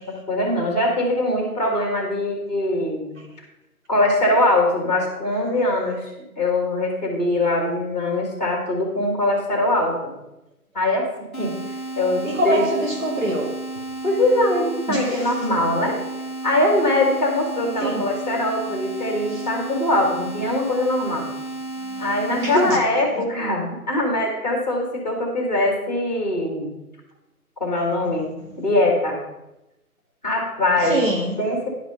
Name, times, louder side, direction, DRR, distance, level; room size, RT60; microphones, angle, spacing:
voice 1, 0.1-3.1 3.9-6.1 6.4-10.1 10.7-11.1 11.4-11.6 12.0-12.7 14.0-16.0 16.4-21.2 22.0-26.7 27.6-29.2 30.2-31.0 31.4-31.7, left 1 dB, 25° left, 0 dB, 2.0 m, -22 dB
sound 1, 11.3-22.8, right 2 dB, ahead, 0.9 m, -33 dB
voice 2, 12.2-13.5 14.9-15.0 17.8-18.0 22.4-22.8 30.9-31.3, equal, 55° right, 1 dB, 2.0 m, -23 dB
11.0 x 5.1 x 5.3 m, 0.95 s
figure-of-eight pair, 165°, 45 cm